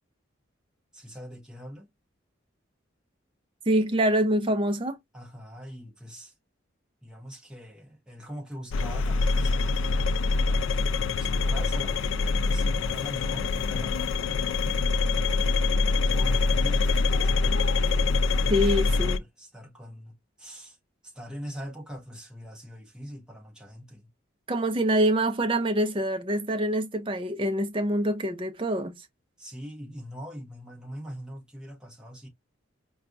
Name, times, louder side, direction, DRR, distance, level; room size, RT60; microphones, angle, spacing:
voice 1, 0.9-1.9 5.1-6.3 7.0-10.4 11.2-15.3 16.0-20.8 21.0-24.1 29.4-32.3, equal, 5° right, 0.9 m, -43 dB
voice 2, 3.7-5.0 18.5-19.2 24.5-29.0, right 1 dB, 25° right, 0.6 m, -25 dB
sound 1, 8.7-19.2, left 3 dB, 75° left, 0.3 m, -25 dB
4.4 x 2.3 x 2.5 m
head